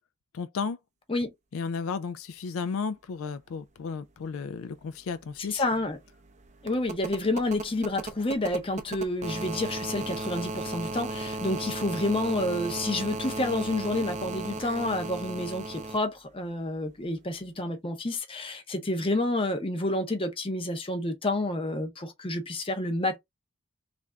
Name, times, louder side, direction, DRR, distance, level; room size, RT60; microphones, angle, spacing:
voice 1, 0.3-0.8 1.5-5.6, left 5 dB, 75° left, 0.4 m, -33 dB
sound 1, 4.8-4.9 5.1-16.0 17.4-17.5, right 2 dB, 35° right, 0.5 m, -36 dB
voice 2, 5.5-6.0 6.6-23.2, left 1 dB, 25° left, 0.7 m, -29 dB
3.3 x 2.5 x 3.3 m
head